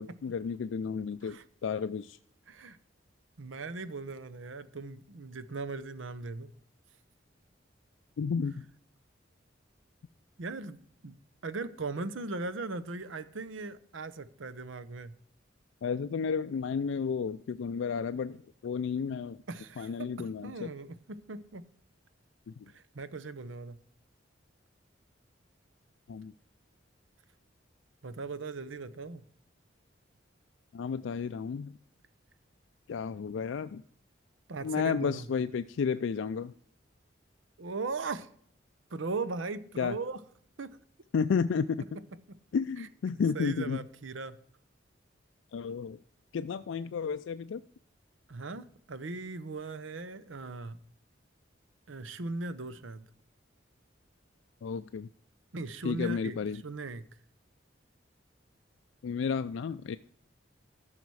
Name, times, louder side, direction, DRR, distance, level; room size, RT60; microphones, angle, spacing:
voice 1, 0.0-2.2 8.2-8.6 15.8-18.4 18.6-19.4 19.8-20.7 22.5-22.7 26.1-26.3 30.7-31.7 32.9-33.8 34.6-36.5 39.8-40.0 41.1-42.0 42.5-43.8 45.5-46.0 46.3-47.6 54.6-55.1 55.8-56.6 59.0-60.0, left 6 dB, 80° left, 11 dB, 0.4 m, -32 dB
voice 2, 3.4-6.5 10.4-11.1 11.4-15.1 19.5-21.0 21.3-21.6 22.7-23.8 28.0-29.2 34.5-35.3 37.6-38.3 38.9-40.2 40.6-40.7 42.8-42.9 43.3-44.4 48.3-50.8 51.9-53.0 55.5-56.4 56.6-57.0, right 3 dB, 90° right, 13 dB, 0.8 m, -38 dB
13.5 x 5.8 x 4.7 m, 0.64 s
head